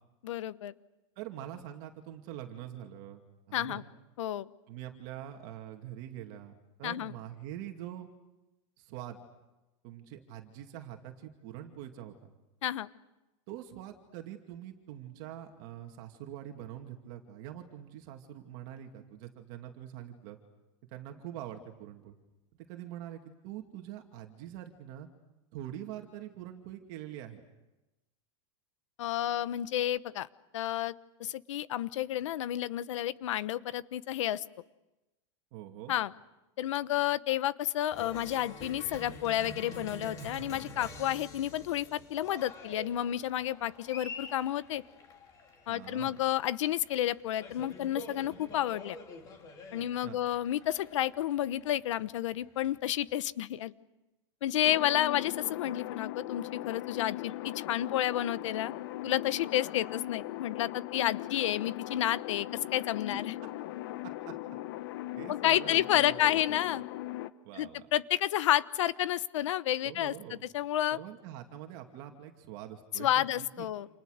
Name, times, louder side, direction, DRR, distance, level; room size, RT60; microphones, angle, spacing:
voice 1, 0.2-0.7 3.5-3.8 4.2-4.5 6.8-7.1 12.6-12.9 29.0-30.3 30.5-30.9 31.2-34.4 35.9-36.1 36.6-44.8 45.7-49.0 49.7-53.7 54.4-58.7 59.0-63.3 65.3-66.8 67.6-71.0 73.0-73.9, left 12 dB, 75° left, 15 dB, 1.1 m, -31 dB
voice 2, 1.2-3.8 4.7-6.5 6.8-8.1 8.8-9.2 9.8-12.3 13.5-20.4 20.9-22.2 22.7-25.1 25.5-27.4 35.5-35.9 45.7-46.2 49.7-50.2 63.1-63.2 64.3-64.4 65.2-66.6 67.4-67.9 69.8-70.4 70.9-73.7, right 11 dB, 40° right, 4 dB, 2.4 m, -44 dB
Cheering, 37.9-53.1, left 2 dB, 20° left, 3.5 m, -47 dB
sound 1, 54.6-67.3, left 15 dB, 45° left, 0.9 m, -39 dB
30.0 x 28.5 x 6.6 m, 1.0 s
supercardioid pair, 175°, 16 cm